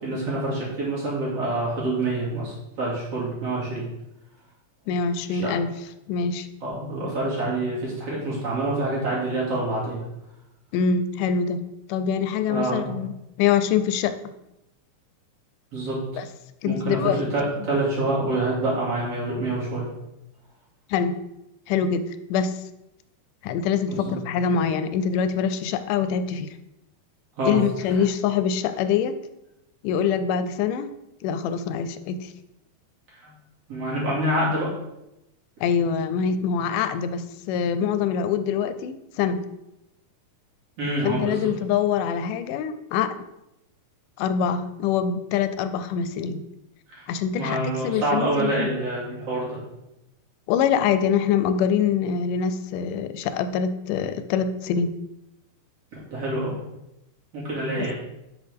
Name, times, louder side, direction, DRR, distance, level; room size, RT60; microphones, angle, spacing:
voice 1, 0.0-3.8 5.3-5.5 6.6-10.0 12.5-12.9 15.7-16.0 16.6-17.0 17.3-19.9 23.9-24.2 27.4-27.5 33.7-34.7 40.8-41.5 46.9-47.1 47.3-49.6 56.1-56.6 57.3-57.9, right 2 dB, 50° right, -6 dB, 3.2 m, -26 dB
voice 2, 4.9-5.7 6.1-6.5 10.7-11.6 11.9-14.1 16.2-16.3 16.6-17.2 17.6-17.7 20.9-21.2 21.7-22.5 23.4-26.5 27.4-29.1 29.8-30.9 31.2-32.3 35.6-39.4 41.0-43.3 44.2-46.4 47.1-48.7 50.5-54.9 57.8-57.9, left 7 dB, 85° left, 11 dB, 2.2 m, -24 dB
10.5 x 6.1 x 3.5 m, 0.88 s
omnidirectional pair, 3.6 m